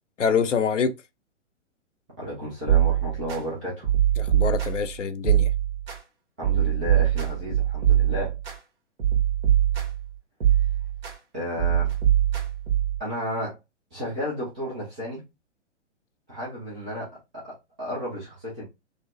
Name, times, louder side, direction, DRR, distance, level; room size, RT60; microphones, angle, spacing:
voice 1, 0.2-1.0 4.2-5.5, left 6 dB, 80° left, 0.5 m, -25 dB
voice 2, 2.2-3.9 6.4-8.3 11.3-11.9 13.0-13.6 13.9-15.2 16.3-18.6, equal, 5° right, 0.3 m, -33 dB
sound 1, 2.7-3.4 3.8-4.9 5.2-6.0 6.4-8.6 9.0-10.1 10.4-11.2 11.6-13.0, right 11 dB, 55° right, 1.5 m, -22 dB
4.0 x 2.0 x 2.4 m
figure-of-eight pair, 120°, 36 cm